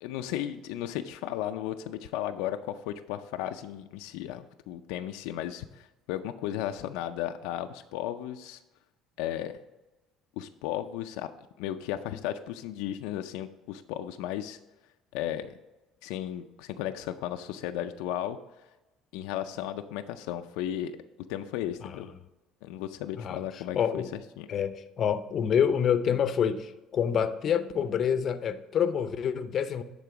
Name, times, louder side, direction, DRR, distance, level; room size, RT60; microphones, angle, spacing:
voice 1, 0.0-8.6 9.2-9.5 10.4-11.3 11.6-14.6 15.1-15.5 16.0-18.4 19.1-20.9 21.3-22.1 22.6-24.0 24.4-24.5, left 12 dB, 90° left, 7 dB, 0.4 m, -35 dB
voice 2, 23.2-24.1 24.5-29.8, left 8 dB, 45° left, 11 dB, 0.6 m, -27 dB
10.5 x 3.8 x 4.9 m, 1.0 s
cardioid pair, 125°, 0 cm